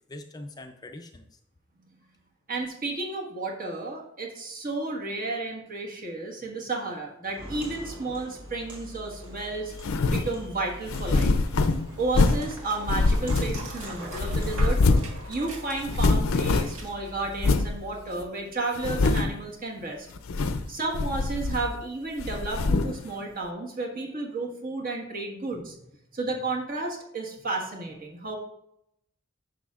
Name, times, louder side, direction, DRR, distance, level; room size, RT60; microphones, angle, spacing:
voice 1, 0.1-1.4 20.5-20.7 25.5-25.7, left 2 dB, 20° left, 5 dB, 0.5 m, -44 dB
voice 2, 2.5-9.7 10.1-11.3 12.0-14.8 15.3-20.1 20.7-25.7 26.1-28.4, right 2 dB, 45° right, 1 dB, 1.5 m, -32 dB
Walk footsteps, 7.2-16.0, right 1 dB, 25° right, 2.3 m, -46 dB
Dog, 8.3-18.2, right 1 dB, 85° right, 1.7 m, -43 dB
sound 1, 9.8-10.3 10.9-12.5 12.9-13.8 14.2-15.2 15.4-15.5 15.8-16.9 17.4-17.7 18.2-18.3 18.8-19.4 20.2-20.7 20.9-21.8 22.2-23.0, left 3 dB, 80° left, 0.5 m, -24 dB
10.0 x 6.4 x 2.4 m, 0.78 s
head